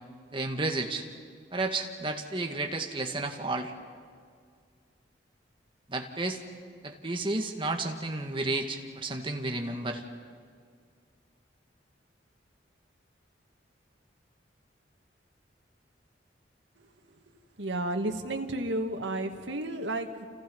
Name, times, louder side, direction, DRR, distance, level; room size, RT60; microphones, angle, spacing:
voice 1, 0.3-1.0 1.5-3.7 5.9-6.4 6.8-10.0, right 2 dB, 30° right, 3 dB, 2.0 m, -32 dB
voice 2, 17.6-20.3, right 1 dB, 90° right, 4 dB, 2.0 m, -32 dB
30.0 x 29.0 x 5.5 m, 2.1 s
head